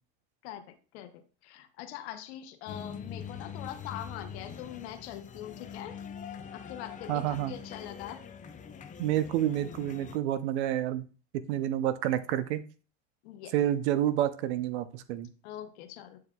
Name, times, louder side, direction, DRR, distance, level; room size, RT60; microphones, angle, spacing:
voice 1, 0.4-6.0 6.5-8.2 13.2-13.5 15.4-16.2, left 11 dB, 85° left, 8 dB, 0.9 m, -43 dB
sound 1, 2.7-10.2, left 7 dB, 25° left, 0.5 m, -43 dB
voice 2, 7.1-7.5 9.0-11.0 11.5-12.6 13.5-15.3, right 12 dB, 90° right, 13 dB, 0.7 m, -29 dB
8.6 x 4.7 x 2.3 m, 0.37 s
supercardioid pair, 120°, 32 cm